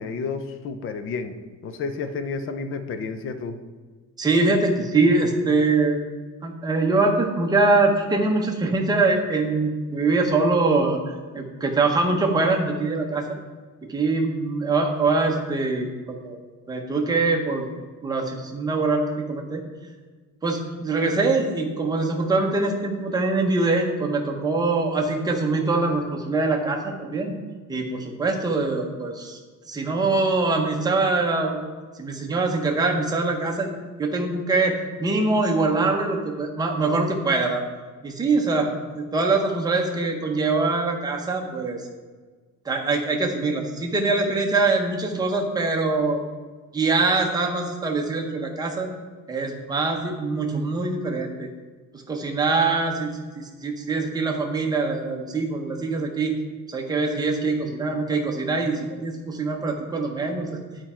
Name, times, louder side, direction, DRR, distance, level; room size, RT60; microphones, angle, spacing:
voice 1, 0.0-1.4 1.6-3.6, left 4 dB, 40° left, 9 dB, 0.5 m, -31 dB
voice 2, 4.2-6.0 6.4-11.0 11.3-13.2 13.9-16.4 16.7-17.7 18.0-19.6 20.4-27.3 27.7-29.4 29.7-31.6 32.0-33.7 34.0-37.6 38.0-38.7 38.9-41.8 42.6-46.2 46.7-48.9 49.3-51.5 51.9-56.3 56.7-60.5, right 3 dB, 10° right, 1 dB, 0.7 m, -23 dB
9.5 x 4.5 x 4.3 m, 1.4 s
cardioid pair, 175°, 34 cm